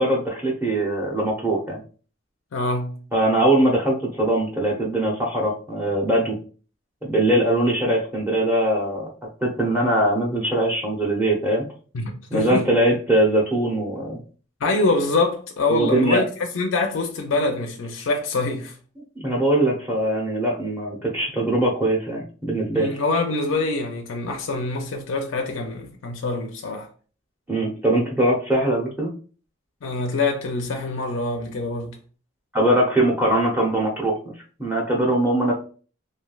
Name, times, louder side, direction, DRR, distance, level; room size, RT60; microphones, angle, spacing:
voice 1, 0.0-1.8 3.1-6.4 7.1-9.1 9.4-11.6 12.3-14.2 15.7-16.2 19.2-22.9 27.5-29.1 32.5-34.2 34.6-35.5, right 1 dB, 10° right, 0.6 m, -21 dB
voice 2, 2.5-3.0 11.9-12.7 14.6-16.3 16.5-18.8 22.7-26.9 29.8-32.0, left 3 dB, 70° left, 0.4 m, -25 dB
3.1 x 2.6 x 2.2 m
head